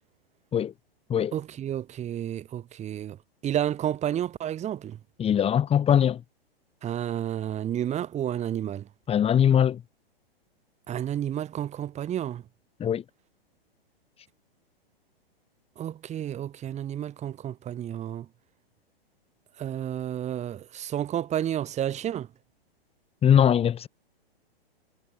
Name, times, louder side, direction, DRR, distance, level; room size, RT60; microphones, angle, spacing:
voice 1, 1.3-3.2 3.4-5.0 6.8-8.9 10.9-12.4 15.8-18.3 19.6-22.3, right 11 dB, 20° right, 7.6 m, -31 dB
voice 2, 5.2-6.2 9.1-9.8 12.8-13.0 23.2-23.9, left 9 dB, 20° left, 4.8 m, -21 dB
hypercardioid pair, 120°, 30 cm